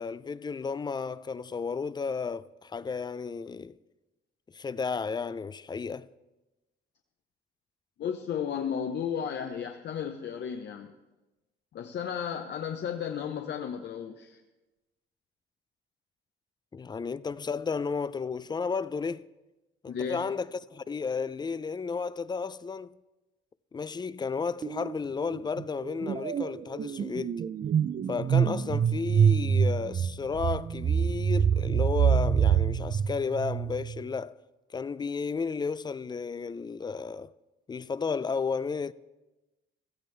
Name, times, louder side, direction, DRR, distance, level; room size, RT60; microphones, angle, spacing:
voice 1, 0.0-3.7 4.5-6.1 16.7-19.3 19.8-23.0 23.7-27.4 28.1-34.4 34.7-37.3 37.7-38.9, left 5 dB, 20° left, 0.4 m, -33 dB
voice 2, 8.0-10.9 11.7-14.4 19.9-20.2, left 7 dB, 60° left, 0.8 m, -34 dB
sound 1, 24.6-24.9 25.2-34.0, right 8 dB, 40° right, 0.5 m, -26 dB
16.0 x 14.0 x 3.3 m
cardioid pair, 90°, 20 cm